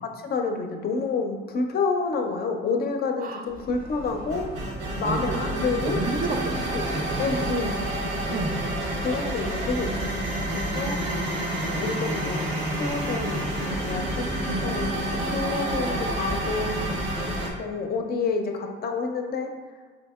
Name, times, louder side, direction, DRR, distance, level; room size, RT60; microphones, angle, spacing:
voice 1, 0.0-4.5 5.0-6.0 6.7-6.9 7.2-7.8 8.3-8.5 9.0-10.1 10.5-11.0 11.3-12.5 12.8-14.3 14.6-16.8 17.6-19.5, left 4 dB, 50° left, 4 dB, 0.4 m, -29 dB
sound 1, 3.5-17.5, right 1 dB, 75° right, 0.7 m, -29 dB
voice 2, 5.0-5.5 5.8-7.4 8.3-8.6 12.5-12.6 14.5-14.7, right 3 dB, 45° right, 4 dB, 0.5 m, -31 dB
3.8 x 2.7 x 2.3 m, 1.5 s
cardioid pair, 90°, 20 cm